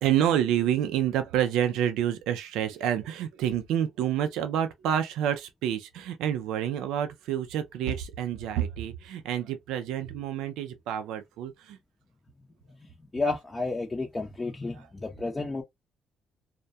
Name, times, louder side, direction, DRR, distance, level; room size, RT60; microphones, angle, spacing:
voice 1, 0.0-11.8 14.7-14.9, right 10 dB, 90° right, 0.3 m, -28 dB
voice 2, 13.1-15.6, left 3 dB, 20° left, 0.5 m, -31 dB
2.2 x 2.1 x 2.6 m
cardioid pair, 90°, 0 cm